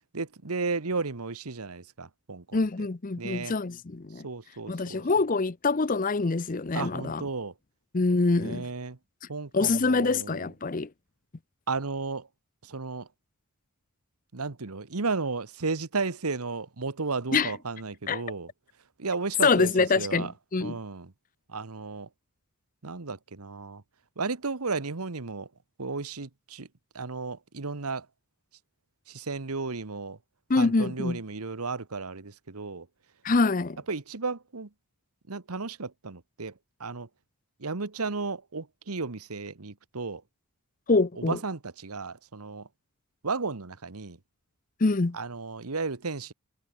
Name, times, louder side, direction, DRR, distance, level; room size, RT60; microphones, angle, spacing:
voice 1, 0.1-2.6 3.2-3.5 4.2-5.0 6.7-7.5 8.4-9.0 9.3-10.5 11.7-12.3 12.6-13.1 14.3-18.5 19.0-20.3 20.6-21.1 21.5-22.1 22.8-23.8 24.2-25.5 25.8-26.7 26.9-28.1 29.1-30.2 30.6-32.9 33.9-34.7 35.3-36.5 36.8-37.1 37.6-40.2 41.2-42.7 43.2-44.2 45.1-46.3, right 4 dB, 85° right, 1.3 m, -34 dB
voice 2, 2.5-4.3 4.7-7.2 7.9-8.7 9.5-10.9 17.3-17.5 18.1-18.2 19.4-20.8 30.5-31.2 33.2-33.8 40.9-41.4 44.8-45.2, left 3 dB, 35° left, 0.6 m, -25 dB
head